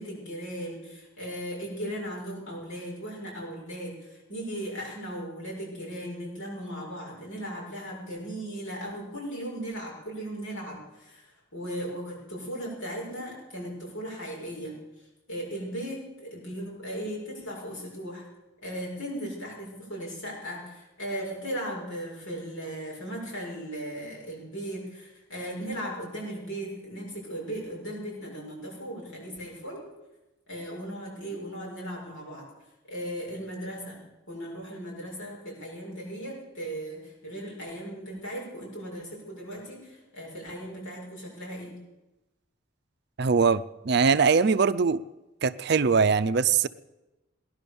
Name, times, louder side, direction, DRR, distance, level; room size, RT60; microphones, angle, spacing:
voice 1, 0.0-14.8 15.3-18.2 18.6-29.8 30.5-32.5 32.9-34.0 34.3-41.7, right 1 dB, 75° left, -3 dB, 6.7 m, -37 dB
voice 2, 43.2-45.0 45.4-46.7, right 5 dB, 55° right, 13 dB, 0.5 m, -22 dB
18.0 x 11.0 x 7.0 m, 1.0 s
head